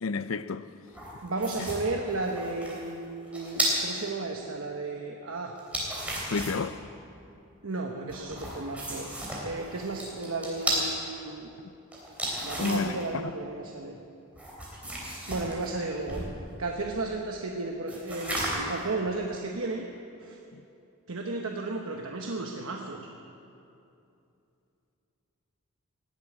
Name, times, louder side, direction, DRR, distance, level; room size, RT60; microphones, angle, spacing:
voice 1, 0.0-0.7 6.3-6.8 12.6-13.0 13.2-13.3 20.5-20.6, left 4 dB, 70° left, 0.5 m, -30 dB
sound 1, 0.9-4.0 5.6-6.7 8.1-10.9 11.9-13.0 14.4-16.4 17.9-18.8, right 1 dB, 5° right, 3.2 m, -33 dB
voice 2, 1.2-5.5 7.6-9.1 9.4-11.5 12.4-14.0 15.3-16.3 16.6-19.8 20.2-20.4 21.1-23.0, right 2 dB, 70° right, 1.1 m, -33 dB
17.5 x 8.4 x 9.6 m
head